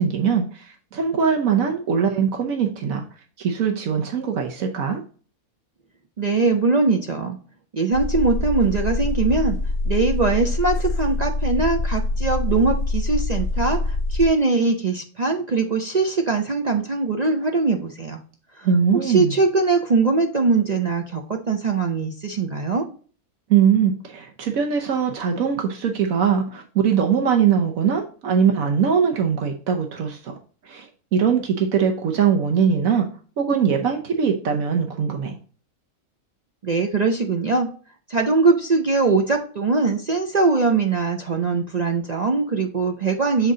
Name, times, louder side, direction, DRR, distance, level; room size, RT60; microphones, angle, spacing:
voice 1, 0.0-3.0 3.4-5.0 18.6-19.4 23.5-30.4 30.6-33.1 33.4-35.4, right 7 dB, 75° right, 3 dB, 1.2 m, -21 dB
voice 2, 6.2-7.4 7.7-9.6 9.8-18.2 18.6-18.7 19.0-22.8 36.6-37.7 38.1-43.5, right 3 dB, 55° right, 3 dB, 0.4 m, -21 dB
sound 1, 7.9-14.3, left 2 dB, 55° left, 0.9 m, -25 dB
7.1 x 4.0 x 3.7 m, 0.41 s
omnidirectional pair, 1.5 m